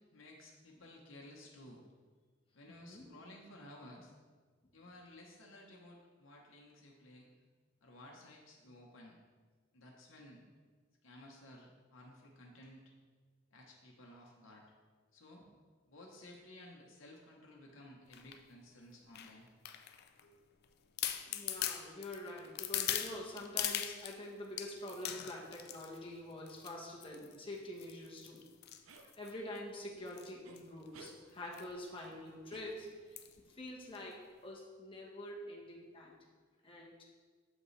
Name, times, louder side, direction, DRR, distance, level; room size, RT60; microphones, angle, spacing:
voice 1, 0.1-1.8 2.5-4.1 4.7-7.3 7.8-9.2 9.7-10.4 11.0-12.8 13.5-14.6 15.1-15.5 15.9-19.5 20.2-20.4, left 1 dB, 70° left, -1 dB, 0.9 m, -55 dB
voice 2, 2.7-3.1 21.2-28.4 29.2-32.9 33.5-36.1 36.6-37.0, left 1 dB, 25° left, -2 dB, 1.1 m, -46 dB
sound 1, 18.1-18.4 19.1-20.2 20.6-20.7 21.0-24.2 24.6-26.0 26.5-26.7 27.0-27.4 27.8-29.6 30.1-30.3 30.6-30.7 30.9-31.1 31.5-31.7 32.0-32.1 33.2-33.4 33.9-34.0, left 11 dB, 50° left, 0.4 m, -40 dB
sound 2, 28.9-29.1 30.4-30.6 30.9-31.2 32.5-33.2, right 3 dB, 80° right, 0.6 m, -55 dB
7.7 x 5.2 x 3.2 m, 1.5 s
head